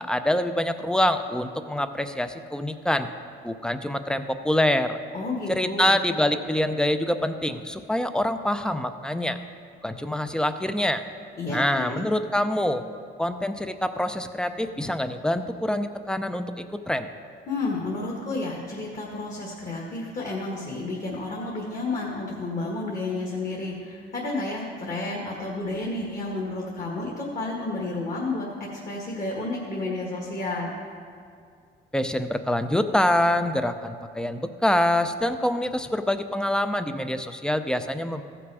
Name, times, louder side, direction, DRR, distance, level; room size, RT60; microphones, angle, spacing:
voice 1, 0.0-3.1 3.4-5.0 5.5-9.4 9.8-11.0 11.5-12.8 13.2-17.1 31.9-38.2, left 1 dB, 5° left, 9 dB, 0.5 m, -25 dB
voice 2, 5.1-5.9 11.4-12.0 17.5-30.7, left 2 dB, 40° left, -2 dB, 1.7 m, -31 dB
14.5 x 6.1 x 4.8 m, 2.2 s
cardioid pair, 90°, 20 cm